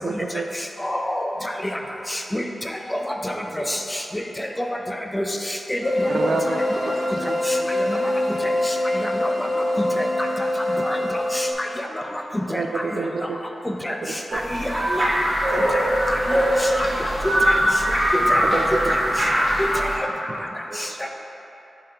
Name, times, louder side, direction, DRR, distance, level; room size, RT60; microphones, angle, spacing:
voice 1, 0.0-0.5 6.1-6.6 7.2-7.7 12.5-13.4 14.3-14.4 18.5-18.9, right 4 dB, 80° right, 2 dB, 0.3 m, -28 dB
voice 2, 0.8-1.3 2.1-2.4 2.9-3.0 3.2-3.3 3.7-4.0 4.4-4.7 5.1-5.2 5.7-5.8 6.2-6.3 7.9-8.0 8.7-8.8 9.0-9.3 10.0-10.1 10.9-11.7 12.5-12.6 13.8-14.0 14.3-15.3 16.1-16.4 17.5-17.6 18.3-18.6 18.9-19.0 20.0-20.1 21.0-21.1, left 1 dB, 10° left, 3 dB, 0.4 m, -27 dB
voice 3, 3.3-4.0 4.9-5.0 6.7-6.9 7.3-7.5 8.3-8.5 16.8-16.9 17.2-17.3 17.6-17.9 18.3-18.7 20.7-21.1, right 2 dB, 50° right, 0 dB, 0.7 m, -39 dB
sound 1, 5.8-11.5, left 1 dB, 85° left, 0.8 m, -24 dB
sound 2, 14.3-20.0, equal, 35° right, 1.4 m, -21 dB
10.5 x 3.7 x 2.8 m, 3.0 s
wide cardioid pair, 100°, 0 cm